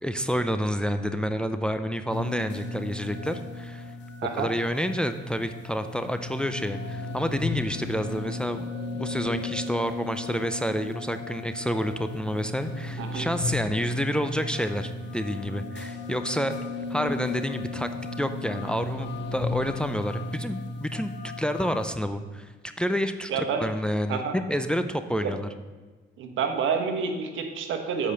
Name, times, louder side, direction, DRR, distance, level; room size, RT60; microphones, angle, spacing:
voice 1, 0.0-3.9 4.3-16.5 16.9-17.9 18.2-22.5 22.8-24.2 24.5-25.5, equal, 5° left, 9 dB, 0.5 m, -29 dB
sound 1, 2.1-21.9, left 3 dB, 65° left, 1.0 m, -35 dB
voice 2, 23.3-23.6 24.1-24.4 25.2-25.3 26.2-28.1, right 6 dB, 80° right, 5 dB, 1.2 m, -28 dB
7.6 x 5.0 x 6.7 m, 1.3 s
cardioid pair, 90°, 20 cm